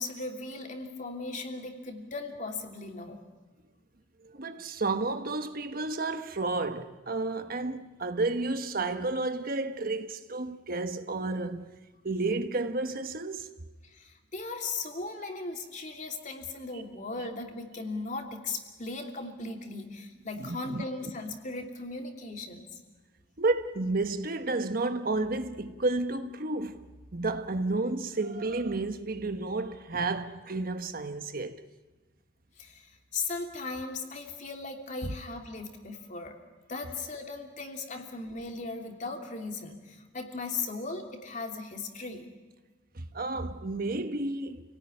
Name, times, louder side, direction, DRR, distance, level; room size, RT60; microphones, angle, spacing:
voice 1, 0.0-3.2 13.9-22.8 32.6-36.4 36.7-42.3, left 3 dB, 45° left, 3.0 m, -37 dB
voice 2, 4.2-11.7 12.0-13.5 20.4-20.8 23.4-31.6 35.0-35.1 42.9-44.6, right 2 dB, 55° right, 1.3 m, -31 dB
29.0 x 18.0 x 9.8 m
head